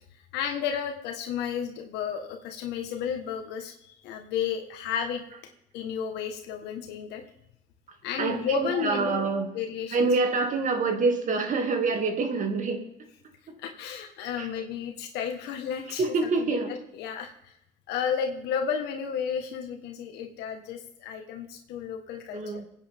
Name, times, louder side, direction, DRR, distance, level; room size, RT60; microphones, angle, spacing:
voice 1, 0.3-5.2 5.7-7.2 8.0-9.2 9.5-10.1 13.6-17.5 17.9-22.7, left 7 dB, 90° left, 4 dB, 1.5 m, -32 dB
voice 2, 8.2-9.5 9.9-12.8 14.4-14.5 16.0-16.7 22.3-22.7, right 4 dB, 50° right, 4 dB, 2.3 m, -26 dB
25.0 x 9.1 x 3.6 m, 0.79 s
cardioid pair, 110°, 17 cm